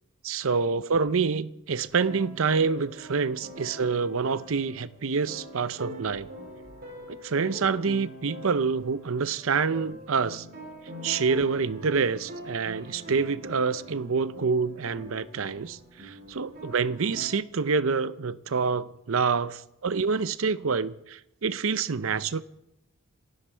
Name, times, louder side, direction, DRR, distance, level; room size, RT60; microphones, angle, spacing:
voice 1, 0.2-6.3 7.1-10.5 11.0-22.4, right 5 dB, 70° right, 0.6 m, -27 dB
sound 1, 1.9-17.3, equal, 45° right, 3.5 m, -43 dB
27.5 x 9.7 x 4.5 m
head